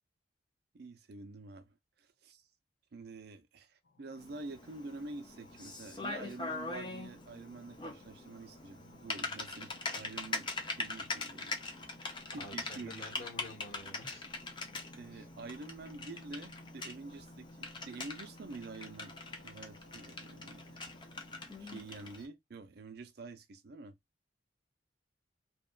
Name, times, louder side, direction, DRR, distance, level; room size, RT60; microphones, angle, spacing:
voice 1, 0.7-2.5 2.9-12.0 12.3-13.2 14.9-20.8 21.6-24.0, right 3 dB, 55° right, 0.4 m, -48 dB
sound 1, 3.8-21.5, left 1 dB, 70° left, 0.6 m, -58 dB
Typing, 4.2-22.3, left 3 dB, 25° left, 0.5 m, -43 dB
voice 2, 12.4-14.3 15.1-15.3, left 1 dB, 45° left, 1.5 m, -49 dB
2.8 x 2.2 x 2.3 m
head